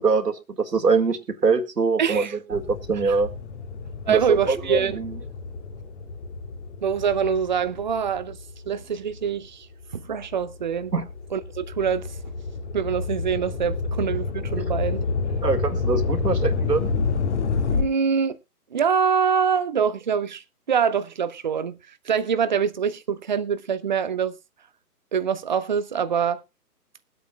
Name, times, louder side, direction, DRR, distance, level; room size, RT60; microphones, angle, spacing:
voice 1, 0.0-3.3 4.1-5.2 10.9-11.0 14.5-14.6 15.4-16.9, right 4 dB, 80° right, 2.1 m, -23 dB
voice 2, 2.0-2.4 3.0-3.2 4.1-5.0 6.8-8.4 8.7-9.7 9.9-10.9 11.3-12.1 12.7-15.0 17.7-18.4 18.7-21.8 22.0-24.3 25.1-26.4, right 7 dB, 30° right, 0.6 m, -24 dB
sound 1, 2.5-9.3 9.8-17.8, left 4 dB, 45° left, 2.1 m, -29 dB
22.0 x 8.4 x 2.3 m
figure-of-eight pair, 135°, 47 cm